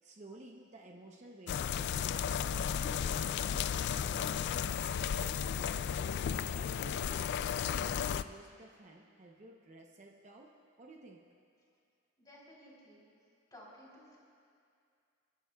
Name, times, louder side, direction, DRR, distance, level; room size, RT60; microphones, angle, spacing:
voice 1, 0.0-5.9 6.5-10.5 10.8-11.2, right 1 dB, 35° right, 0 dB, 0.8 m, -54 dB
sound 1, 1.5-8.2, left 8 dB, 60° left, 0.3 m, -34 dB
voice 2, 12.2-13.1 13.5-14.2, left 1 dB, 20° left, -5 dB, 3.7 m, -55 dB
30.0 x 11.0 x 2.3 m, 2.3 s
head